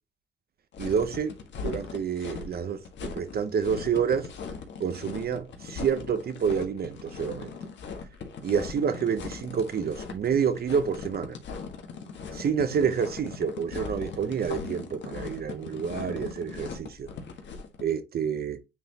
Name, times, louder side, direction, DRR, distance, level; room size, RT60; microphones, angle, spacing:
sound 1, 0.7-17.8, left 5 dB, 65° left, 1.7 m, -39 dB
voice 1, 0.8-1.3 1.6-4.3 4.8-7.5 8.4-11.4 12.3-17.1 17.8-18.6, right 7 dB, 50° right, 0.8 m, -28 dB
9.4 x 3.6 x 2.9 m
cardioid pair, 90°, 20 cm